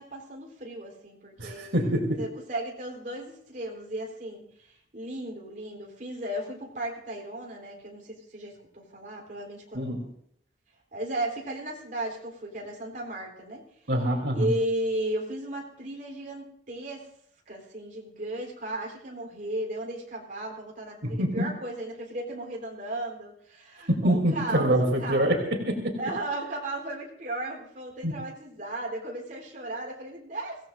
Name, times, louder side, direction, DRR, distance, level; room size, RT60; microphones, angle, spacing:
voice 1, 0.0-9.9 10.9-13.6 14.3-17.1 17.5-25.3 26.0-30.7, right 1 dB, 50° right, -2 dB, 3.9 m, -35 dB
voice 2, 1.4-2.2 9.7-10.0 13.9-14.5 21.0-21.4 23.9-26.0 28.0-28.1, right 1 dB, 80° right, 1 dB, 3.3 m, -25 dB
24.5 x 17.0 x 2.6 m, 0.68 s
head